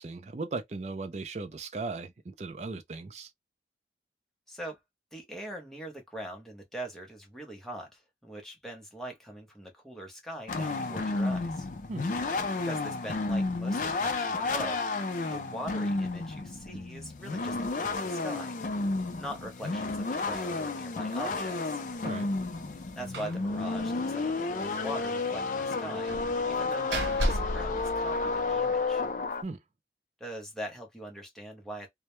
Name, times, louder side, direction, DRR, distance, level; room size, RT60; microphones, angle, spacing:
voice 1, 0.0-3.3 11.9-12.1 22.0-22.3 29.4-29.6, right 3 dB, 40° right, 0.4 m, -37 dB
voice 2, 4.5-4.8 5.1-11.7 12.6-14.9 15.3-18.6 19.2-21.8 23.0-26.1 26.4-29.0 30.2-31.9, equal, ahead, 0.7 m, -42 dB
sound 1, 10.5-29.4, left 3 dB, 45° left, 0.4 m, -31 dB
Slam, 23.1-23.5 23.7-23.8 24.2-24.3 26.1-28.7, equal, 85° right, 0.8 m, -34 dB
2.2 x 2.1 x 2.9 m
head